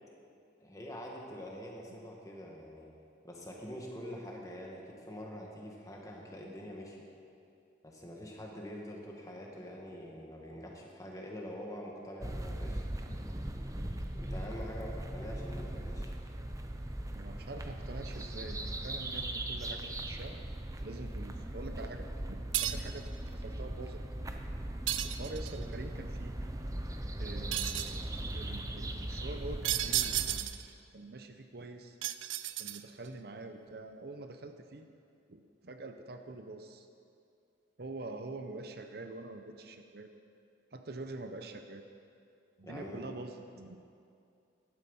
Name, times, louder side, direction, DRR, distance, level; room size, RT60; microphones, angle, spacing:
voice 1, 0.6-2.9 3.2-7.0 7.8-12.8 14.2-16.1 42.6-43.0, equal, 15° left, -1 dB, 1.8 m, -45 dB
sound 1, 12.2-30.4, right 1 dB, 15° right, 0.7 m, -39 dB
voice 2, 17.1-20.4 20.8-23.1 23.3-24.1 25.0-26.3 27.2-30.6 30.9-32.0 32.6-34.9 35.3-36.9 37.8-40.1 40.7-41.9 42.6-43.8, right 2 dB, 55° right, 6 dB, 0.7 m, -45 dB
sound 2, 22.5-23.0 24.9-25.6 27.5-28.0 29.6-30.7 32.0-33.1, right 13 dB, 85° right, 0.5 m, -33 dB
15.5 x 12.0 x 5.5 m, 2.5 s
head